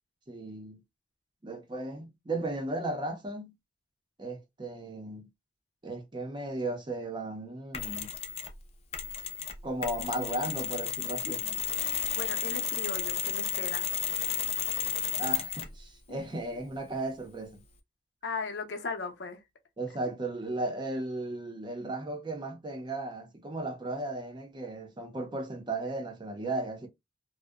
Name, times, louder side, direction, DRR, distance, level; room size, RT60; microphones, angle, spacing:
voice 1, 0.3-0.8 1.4-3.5 4.2-5.3 5.8-8.1 9.6-11.4 15.2-17.6 19.8-26.9, right 2 dB, 25° right, 0.6 m, -35 dB
Mechanisms, 7.7-8.6 8.9-15.8, left 9 dB, 35° left, 0.4 m, -33 dB
voice 2, 11.0-11.6 12.1-13.9 16.1-16.7 18.2-19.4, left 4 dB, 90° left, 0.6 m, -38 dB
2.6 x 2.0 x 2.3 m
head